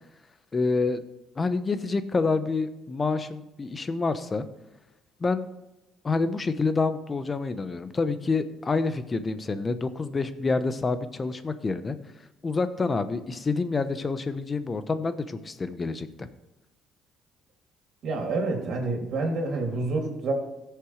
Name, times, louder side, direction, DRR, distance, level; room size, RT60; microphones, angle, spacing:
voice 1, 0.5-1.0 1.4-4.5 5.2-5.4 6.0-12.0 12.4-16.3, left 3 dB, 30° left, 11 dB, 0.9 m, -27 dB
voice 2, 18.0-20.3, right 3 dB, 60° right, 1 dB, 3.1 m, -28 dB
16.0 x 6.8 x 3.3 m, 0.97 s
cardioid pair, 90°, 0 cm